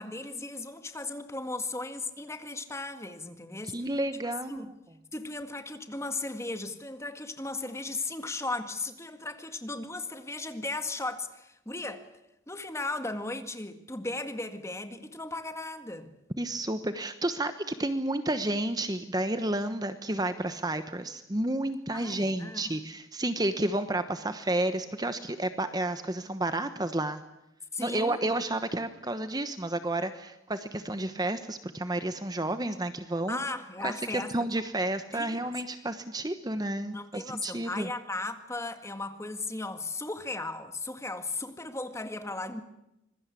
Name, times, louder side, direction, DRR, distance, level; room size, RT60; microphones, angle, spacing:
voice 1, 0.0-3.9 4.2-4.7 5.1-12.1 12.5-16.1 21.9-22.9 27.7-28.3 33.3-34.6 35.1-35.5 36.9-42.6, left 2 dB, 15° left, 8 dB, 1.9 m, -36 dB
voice 2, 3.7-4.7 16.4-27.2 27.8-33.4 33.8-37.9, right 1 dB, 20° right, 10 dB, 1.1 m, -31 dB
26.0 x 22.0 x 8.4 m, 0.88 s
head